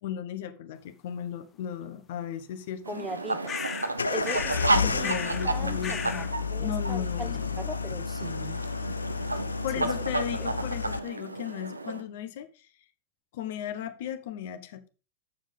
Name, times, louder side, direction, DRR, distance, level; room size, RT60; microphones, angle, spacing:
voice 1, 0.0-3.0 4.7-6.3 6.6-7.6 9.6-12.7 13.3-14.9, left 9 dB, 55° left, 1.0 m, -36 dB
voice 2, 2.9-3.6 4.1-4.6 4.8-5.1 5.4-7.3 7.6-8.6 9.8-9.9, right 2 dB, 10° right, 1.1 m, -39 dB
sound 1, 2.9-12.0, right 2 dB, 80° right, 0.8 m, -32 dB
sound 2, 3.5-3.9 4.2-4.7 5.0-5.5 5.8-6.3, left 7 dB, 25° left, 0.8 m, -35 dB
sound 3, 4.0-11.0, left 6 dB, 75° left, 0.4 m, -32 dB
7.4 x 6.7 x 5.2 m
figure-of-eight pair, 90°, 0 cm